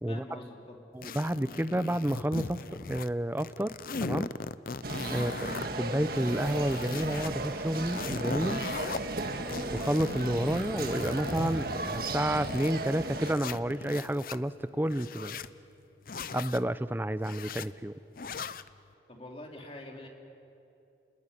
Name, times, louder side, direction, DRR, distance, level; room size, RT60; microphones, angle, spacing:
voice 1, 0.1-0.8 19.1-20.1, left 1 dB, 30° left, 1 dB, 3.4 m, -45 dB
voice 2, 0.9-4.3 5.1-8.7 9.7-15.4 16.3-17.9, right 1 dB, 10° right, 13 dB, 0.6 m, -30 dB
sound 1, 1.0-3.1 3.4-5.7 6.1-7.3 7.7-9.0 9.5-12.7 13.2-14.4 14.9-15.5 16.0-16.6 17.2-17.7 18.2-18.7, left 4 dB, 50° left, 0.6 m, -38 dB
sound 2, 4.8-13.3, right 2 dB, 55° right, 1.7 m, -35 dB
29.0 x 20.0 x 9.9 m, 2.8 s
head